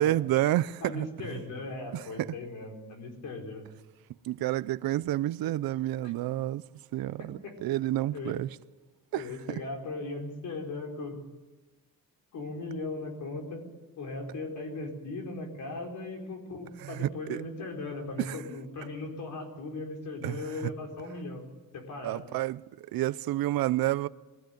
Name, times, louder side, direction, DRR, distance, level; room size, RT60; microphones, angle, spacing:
voice 1, 0.0-1.1 1.9-2.3 4.2-6.6 6.9-8.5 9.1-9.6 16.8-17.4 18.2-18.4 20.2-20.7 22.0-24.1, right 14 dB, 85° right, 0.7 m, -29 dB
voice 2, 0.8-3.7 6.0-6.1 7.2-7.6 8.1-8.4 9.1-11.2 12.3-13.7 14.0-21.4 21.7-22.3, left 2 dB, 60° left, 4.5 m, -38 dB
22.5 x 15.5 x 9.2 m
cardioid pair, 180°, 34 cm